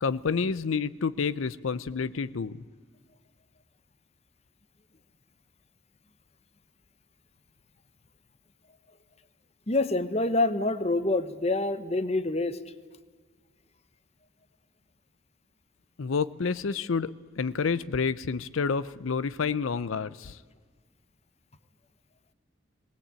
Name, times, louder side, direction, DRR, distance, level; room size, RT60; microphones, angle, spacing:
voice 1, 0.0-2.6 16.0-20.4, left 5 dB, 85° left, 15 dB, 0.6 m, -29 dB
voice 2, 9.7-12.6, left 2 dB, 30° left, 13 dB, 0.9 m, -26 dB
19.5 x 19.5 x 8.8 m, 1.5 s
head